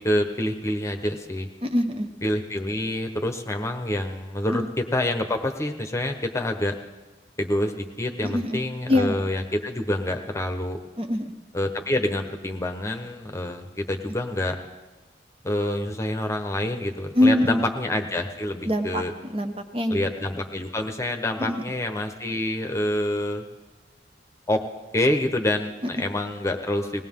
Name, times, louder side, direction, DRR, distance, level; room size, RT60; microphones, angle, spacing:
voice 1, 0.0-1.5 2.2-6.7 7.4-10.8 11.5-14.6 15.4-19.1 19.9-23.4 24.5-24.6 24.9-27.0, left 1 dB, 15° left, 5 dB, 1.1 m, -27 dB
voice 2, 1.6-2.1 4.5-4.7 8.2-8.6 8.9-9.2 11.0-11.3 17.2-17.7 18.7-20.0 21.4-21.6, left 1 dB, 30° right, 5 dB, 1.0 m, -23 dB
20.0 x 18.5 x 3.7 m, 1.2 s
head